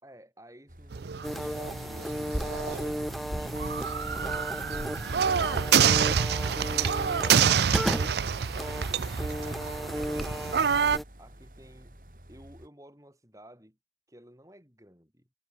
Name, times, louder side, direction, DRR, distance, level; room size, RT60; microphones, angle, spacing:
voice 1, 0.0-4.2 11.2-12.0 12.3-13.8 14.1-15.3, right 1 dB, 20° right, 7.0 m, -54 dB
sound 1, 0.7-12.7, right 1 dB, 50° right, 5.7 m, -51 dB
sound 2, 0.9-11.0, right 7 dB, 70° right, 0.5 m, -27 dB
sound 3, 1.2-11.0, equal, ahead, 1.2 m, -35 dB
head